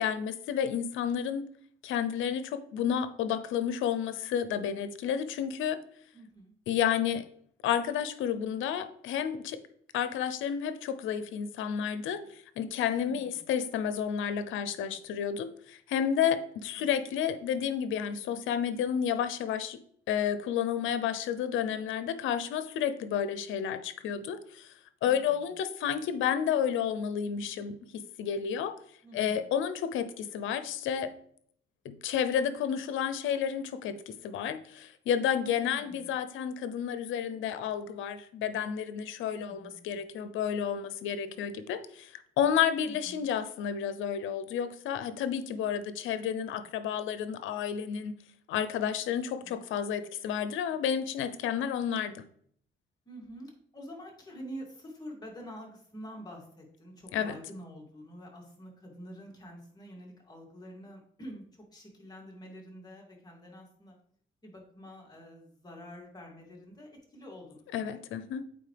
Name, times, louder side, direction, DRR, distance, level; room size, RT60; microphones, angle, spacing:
voice 1, 0.0-1.4 1.8-5.8 6.7-7.3 7.6-9.6 9.9-19.8 20.1-24.7 25.0-28.7 29.1-31.1 31.8-48.2 48.5-52.2 57.1-57.4 67.7-68.4, left 8 dB, 85° left, 12 dB, 0.6 m, -31 dB
voice 2, 6.1-6.5 13.1-13.5 16.8-16.9 25.1-25.5 29.0-29.5 35.7-36.1 39.4-40.0 42.8-43.3 49.4-49.7 53.1-64.0 64.4-68.2, equal, 20° left, -1 dB, 2.5 m, -47 dB
8.6 x 4.1 x 3.4 m, 0.62 s
cardioid pair, 90°, 20 cm